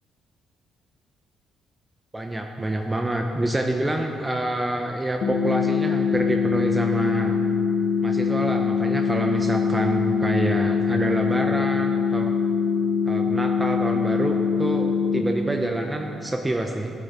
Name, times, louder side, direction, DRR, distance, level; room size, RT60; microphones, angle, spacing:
voice 1, 2.1-7.3 8.0-12.3 13.0-17.0, right 1 dB, 15° right, 3 dB, 0.6 m, -27 dB
sound 1, 5.2-15.2, left 6 dB, 70° left, 0.8 m, -23 dB
12.5 x 6.8 x 4.2 m, 2.6 s
cardioid pair, 90°, 0 cm